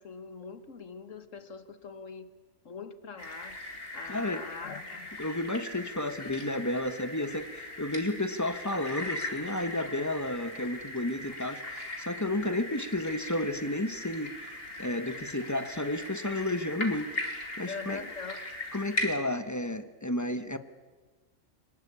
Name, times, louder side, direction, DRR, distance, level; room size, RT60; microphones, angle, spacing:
voice 1, 0.0-2.3 2.7-3.6 3.9-5.1 17.7-18.4, left 5 dB, 70° left, 10 dB, 1.7 m, -42 dB
sound 1, 3.2-19.1, left 1 dB, 45° left, 3.1 m, -39 dB
voice 2, 4.1-4.4 5.2-14.3 14.8-17.1 17.6-18.0 18.7-20.6, left 1 dB, 15° left, 10 dB, 1.0 m, -32 dB
24.5 x 20.0 x 8.6 m, 1.3 s
omnidirectional pair, 1.4 m